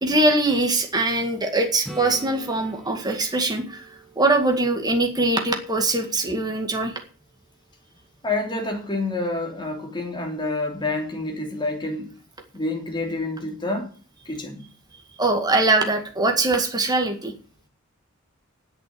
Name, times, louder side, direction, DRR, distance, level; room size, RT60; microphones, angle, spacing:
voice 1, 0.0-6.9 15.2-17.3, right 2 dB, 20° right, 2.1 m, -22 dB
Acoustic guitar / Strum, 1.8-5.6 10.5-10.6, right 1 dB, ahead, 2.0 m, -43 dB
voice 2, 8.2-12.1 12.5-13.9 14.2-14.6, left 2 dB, 20° left, 3.3 m, -28 dB
10.5 x 8.2 x 10.0 m
head